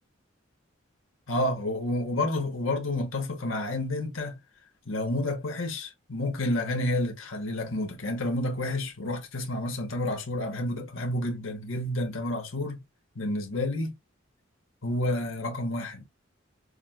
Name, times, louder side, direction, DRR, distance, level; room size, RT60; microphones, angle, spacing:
voice 1, 1.3-4.4 4.9-12.8 13.1-13.9 14.8-16.0, left 1 dB, 85° left, 1.3 m, -30 dB
6.4 x 2.2 x 2.4 m
head